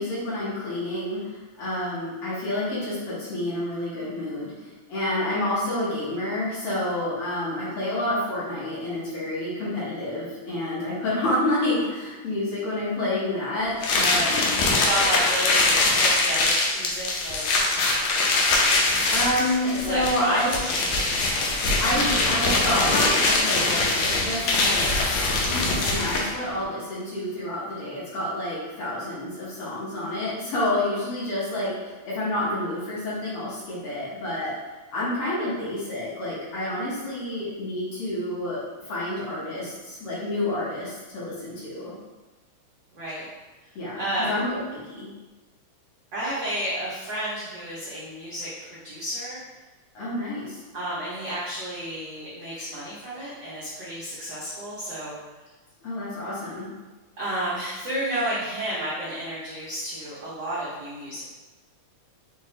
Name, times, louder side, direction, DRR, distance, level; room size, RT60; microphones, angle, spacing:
voice 1, 0.0-14.5 19.1-20.6 21.6-34.5 34.9-38.6 38.9-41.9 43.8-44.6 44.9-45.1 49.9-50.6 55.8-56.7, left 1 dB, 60° left, -9 dB, 1.8 m, -29 dB
sound 1, 13.8-26.4, left 2 dB, 75° left, 1.9 m, -23 dB
voice 2, 14.6-17.6 18.4-18.8 19.8-21.1 42.9-43.3 44.0-44.3 46.1-49.4 50.7-55.2 57.2-61.2, right 1 dB, 75° right, -10 dB, 1.0 m, -31 dB
5.7 x 2.5 x 3.1 m, 1.2 s
omnidirectional pair, 3.4 m